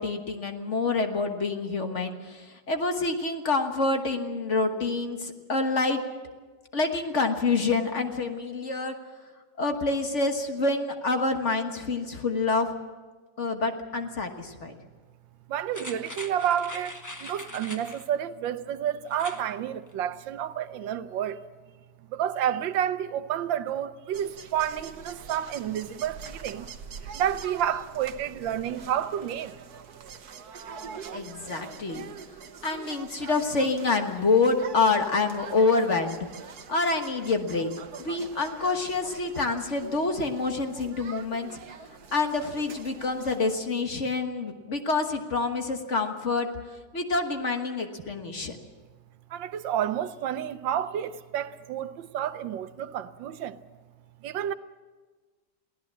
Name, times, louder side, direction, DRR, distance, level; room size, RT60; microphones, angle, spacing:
voice 1, 0.0-6.0 6.7-8.9 9.6-12.7 13.4-14.7 31.1-32.0 32.6-36.3 36.7-37.7 38.0-41.5 42.1-46.5 46.9-48.6, left 3 dB, 40° left, 1.6 m, -27 dB
voice 2, 15.5-21.4 22.1-26.7 27.1-29.6 49.3-53.6 54.2-54.5, right 10 dB, 85° right, 1.5 m, -30 dB
sound 1, 15.7-18.1 19.1-19.5 19.9-20.0, left 1 dB, 15° left, 0.9 m, -41 dB
sound 2, 24.1-43.5, right 7 dB, 60° right, 1.5 m, -44 dB
23.0 x 16.0 x 7.5 m
omnidirectional pair, 2.0 m